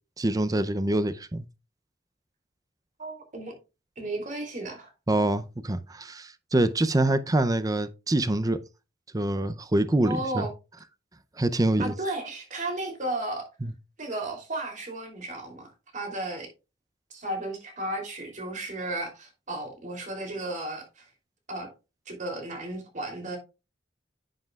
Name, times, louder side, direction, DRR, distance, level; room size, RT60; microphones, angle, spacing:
voice 1, 0.2-1.4 5.1-8.6 9.1-10.5 11.4-11.9 13.6-13.7, right 1 dB, 20° right, 0.5 m, -25 dB
voice 2, 3.0-3.5 4.0-4.9 10.0-10.5 11.8-13.5 14.0-16.5 17.1-21.1 21.5-21.7 22.1-23.4, right 2 dB, 45° right, 3.1 m, -34 dB
10.5 x 7.7 x 2.4 m
head